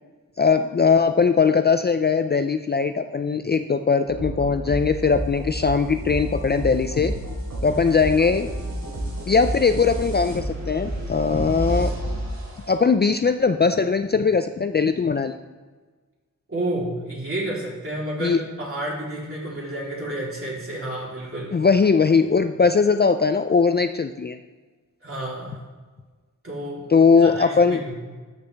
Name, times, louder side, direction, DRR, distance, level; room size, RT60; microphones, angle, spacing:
voice 1, 0.4-7.1 7.6-8.5 9.3-11.9 12.7-15.4 18.2-18.4 21.5-24.4 26.9-27.8, left 5 dB, 30° left, 8 dB, 0.4 m, -20 dB
sound 1, 4.1-12.7, right 1 dB, 85° right, 2.8 m, -30 dB
voice 2, 6.7-7.1 7.6-7.8 16.5-21.6 25.0-25.6 26.4-26.9 27.1-27.9, right 1 dB, 40° right, -5 dB, 3.3 m, -31 dB
12.5 x 6.7 x 3.4 m, 1.4 s
wide cardioid pair, 105°, 33 cm